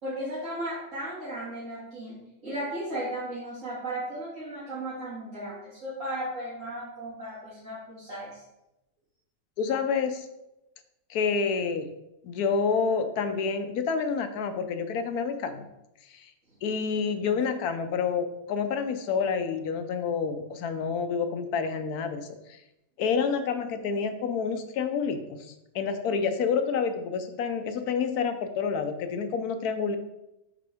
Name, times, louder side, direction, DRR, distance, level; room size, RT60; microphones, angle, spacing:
voice 1, 0.0-8.4, right 1 dB, 60° right, -10 dB, 2.4 m, -35 dB
voice 2, 9.6-10.3 11.1-11.9 12.2-15.7 16.1-16.3 16.6-22.6 23.0-25.5 25.7-30.0, left 5 dB, 90° left, 8 dB, 1.2 m, -28 dB
8.8 x 3.8 x 3.4 m, 0.90 s
omnidirectional pair, 1.6 m